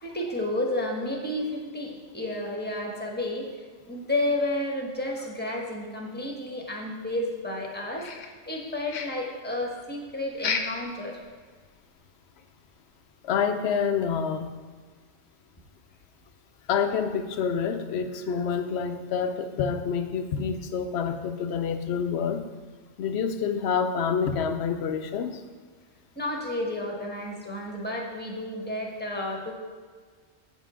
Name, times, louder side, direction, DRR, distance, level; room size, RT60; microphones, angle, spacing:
voice 1, 0.0-3.5 3.8-11.2 26.2-29.5, left 1 dB, 10° left, -1 dB, 1.1 m, -31 dB
sound 1, 8.0-8.6 8.9-9.3 10.4-10.9 11.2-11.3 11.8-11.9 12.4-12.5, left 6 dB, 85° left, 1.1 m, -32 dB
voice 2, 13.2-14.5 16.7-22.4 23.0-25.4, left 6 dB, 60° left, 8 dB, 0.8 m, -27 dB
8.2 x 5.6 x 4.9 m, 1.5 s
omnidirectional pair, 1.4 m